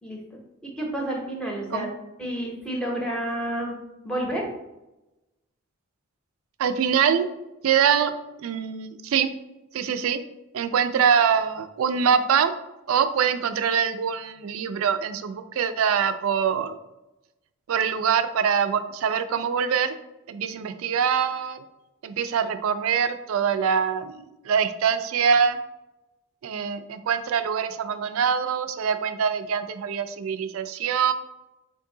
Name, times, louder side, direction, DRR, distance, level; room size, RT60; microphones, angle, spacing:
voice 1, 0.0-1.9 2.2-3.8 4.0-4.5, right 1 dB, 5° left, -2 dB, 0.7 m, -30 dB
voice 2, 6.6-7.3 7.6-8.1 8.4-9.3 9.7-10.2 10.5-12.5 12.9-16.7 17.7-20.0 20.3-21.7 22.0-25.6 26.4-31.1, right 7 dB, 75° right, 10 dB, 0.3 m, -24 dB
3.7 x 2.6 x 3.7 m, 0.96 s
head